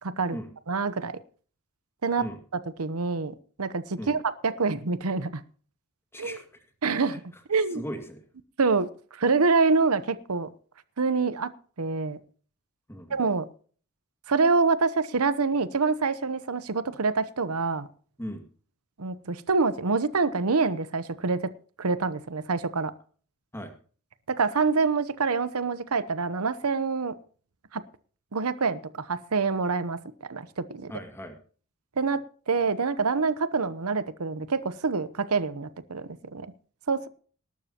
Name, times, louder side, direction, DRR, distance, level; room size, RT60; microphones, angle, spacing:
voice 1, 0.0-0.4 0.7-1.2 2.0-2.2 2.8-5.4 6.2-6.4 6.8-7.2 7.5-7.8 8.6-8.9 9.1-10.5 11.0-11.5 11.8-12.2 13.1-13.5 14.3-17.9 19.0-21.5 21.8-22.9 24.3-27.1 27.7-27.8 28.3-30.0 30.3-30.9 32.0-36.5 36.9-37.1, right 4 dB, 80° right, 14 dB, 0.9 m, -26 dB
voice 2, 6.1-6.5 7.0-7.2 7.7-8.2 12.9-13.2 18.2-18.4 23.5-23.7 30.9-31.4, equal, 10° left, 5 dB, 2.1 m, -37 dB
19.5 x 12.5 x 2.9 m, 0.42 s
head